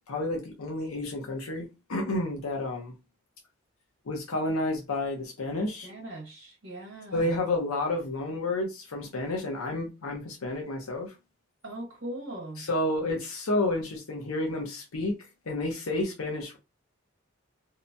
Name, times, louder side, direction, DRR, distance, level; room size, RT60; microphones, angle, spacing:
voice 1, 0.1-2.9 4.1-5.9 7.1-11.1 12.6-15.1 15.5-16.6, left 2 dB, 85° left, 0.7 m, -30 dB
voice 2, 5.6-7.3 11.6-12.6, right 1 dB, 60° right, 1.2 m, -40 dB
2.7 x 2.1 x 2.6 m
head